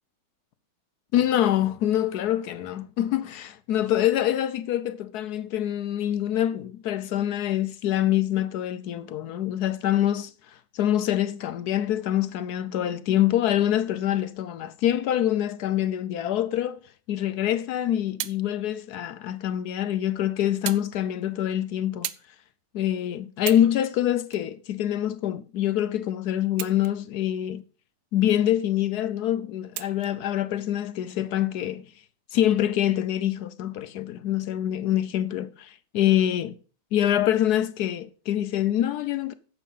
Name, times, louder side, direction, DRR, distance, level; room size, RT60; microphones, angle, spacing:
voice 1, 1.1-10.3 10.7-16.8 17.1-22.1 22.7-27.6 28.1-31.8 32.3-36.5 36.9-39.3, left 11 dB, 70° left, 1.1 m, -25 dB
sound 1, 17.8-18.4 19.3-19.4 20.7-20.9 21.2-21.5 22.0-22.3 22.8-22.9 23.3-23.7 24.3-25.3 26.5-27.2 27.6-27.7 29.7-30.2 31.1-31.2, right 13 dB, 80° right, 1.3 m, -35 dB
10.0 x 6.9 x 5.5 m
omnidirectional pair, 1.9 m